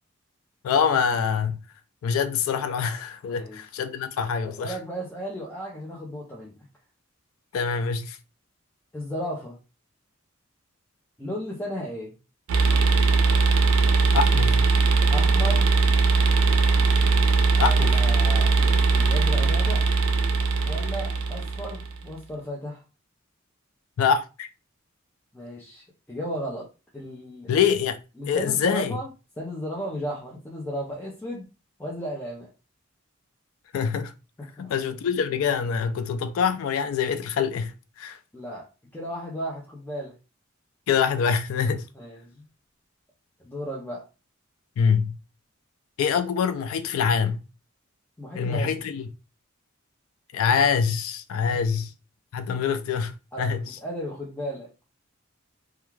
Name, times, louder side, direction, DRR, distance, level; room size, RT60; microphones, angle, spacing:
voice 1, 0.6-1.6 2.0-4.8 7.5-8.2 14.1-14.6 17.6-18.0 24.0-24.5 27.5-28.0 28.3-29.0 33.7-34.1 34.6-38.2 40.9-41.9 44.8-45.1 46.0-47.4 48.3-49.1 50.3-51.9 52.3-53.8, left 6 dB, 85° left, 0.3 m, -25 dB
voice 2, 3.2-3.6 4.4-6.6 8.9-9.6 11.2-12.1 15.1-15.7 17.5-19.8 20.6-22.8 25.3-26.7 26.9-27.5 28.2-29.1 29.4-31.5 31.8-32.5 34.4-34.7 38.3-38.7 38.9-40.1 42.0-42.4 43.4-44.1 48.2-48.7 51.3-51.6 53.3-54.7, equal, 10° left, 0.5 m, -34 dB
sound 1, 12.5-22.0, right 4 dB, 90° right, 0.4 m, -20 dB
2.3 x 2.3 x 3.0 m
head